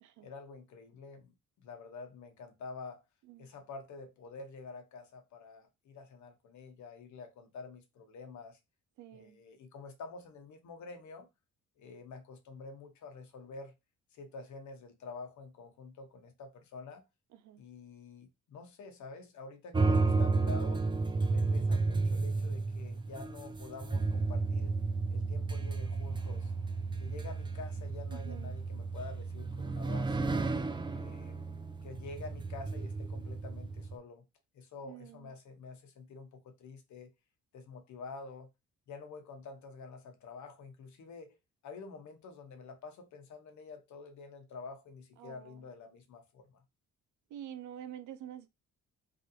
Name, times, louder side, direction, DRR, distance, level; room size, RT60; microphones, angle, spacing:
voice 1, 0.2-3.0 3.4-8.6 9.1-11.3 11.8-13.8 14.1-17.0 17.6-20.9 21.3-24.8 25.1-26.5 27.0-30.4 30.9-31.4 31.8-34.2 34.5-37.1 37.5-38.5 38.9-41.4 41.6-46.6, left 4 dB, 70° left, 1.0 m, -48 dB
voice 2, 9.0-9.4 17.4-17.6 28.1-28.5 34.9-35.3 45.2-45.6 47.3-48.5, right 11 dB, 75° right, 0.5 m, -47 dB
sound 1, 19.7-33.9, right 3 dB, 15° right, 0.4 m, -32 dB
3.3 x 2.6 x 2.6 m
cardioid pair, 90°, 30 cm